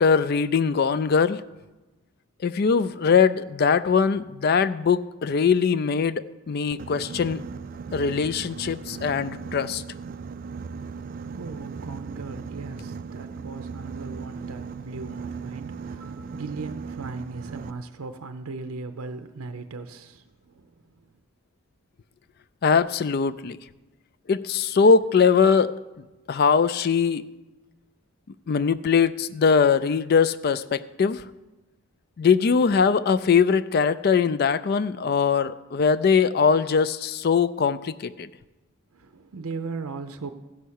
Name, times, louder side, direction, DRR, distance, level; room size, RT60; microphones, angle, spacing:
voice 1, 0.0-1.4 2.4-7.4 7.9-9.8 22.6-23.6 24.3-25.7 26.3-27.2 28.5-31.2 32.2-38.3, left 5 dB, 45° left, 0.3 m, -21 dB
Boat Water vehicle, 6.7-17.7, right 5 dB, 40° right, 0.3 m, -37 dB
voice 2, 11.3-20.7 38.9-40.3, right 4 dB, 90° right, 0.6 m, -38 dB
15.0 x 5.6 x 6.4 m
head